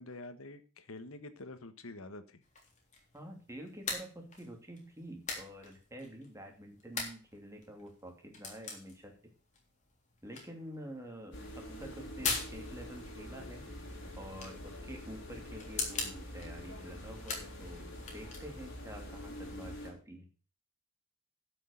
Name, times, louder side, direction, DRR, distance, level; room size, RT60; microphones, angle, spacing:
voice 1, 0.0-2.4, left 2 dB, 85° left, 11 dB, 1.4 m, -47 dB
sound 1, 2.4-18.8, left 4 dB, 35° left, 3.5 m, -44 dB
voice 2, 3.1-9.1 10.2-13.7 14.2-20.3, equal, 15° right, 3 dB, 2.7 m, -48 dB
sound 2, 11.3-19.9, left 1 dB, 60° left, 3.6 m, -46 dB
12.0 x 6.5 x 6.5 m, 0.38 s
head